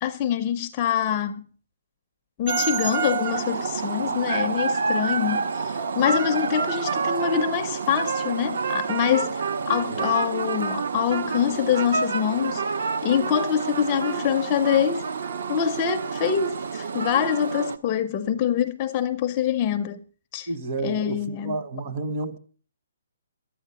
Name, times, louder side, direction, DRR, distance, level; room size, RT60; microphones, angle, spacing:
voice 1, 0.0-1.5 2.4-12.7 13.0-15.1 15.5-20.0 20.3-20.5 20.8-21.6, left 9 dB, 15° left, 0.5 m, -25 dB
sound 1, 2.5-17.8, right 5 dB, 50° right, 0.8 m, -28 dB
voice 2, 20.5-22.4, right 2 dB, 25° right, 1.1 m, -31 dB
12.0 x 8.9 x 6.9 m
hypercardioid pair, 180°, 0 cm